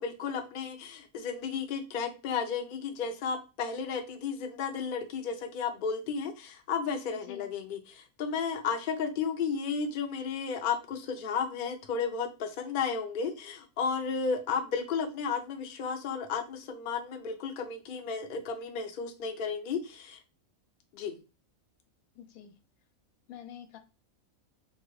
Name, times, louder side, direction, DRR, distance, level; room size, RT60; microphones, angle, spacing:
voice 1, 0.0-20.2 20.9-21.2, left 5 dB, 60° left, 5 dB, 0.5 m, -33 dB
voice 2, 22.1-22.6 23.3-23.8, left 9 dB, 85° left, 10 dB, 1.0 m, -46 dB
3.0 x 2.4 x 3.1 m, 0.29 s
omnidirectional pair, 1.5 m